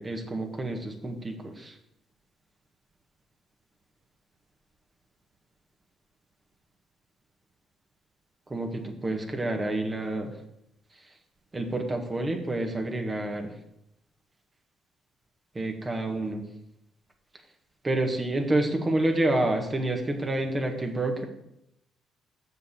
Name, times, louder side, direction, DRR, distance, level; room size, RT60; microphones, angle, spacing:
voice 1, 0.0-1.7 8.5-10.3 11.5-13.5 15.6-16.4 17.8-21.2, right 2 dB, 30° right, 3 dB, 1.7 m, -28 dB
6.7 x 6.5 x 7.2 m, 0.81 s
supercardioid pair, 70°, 0 cm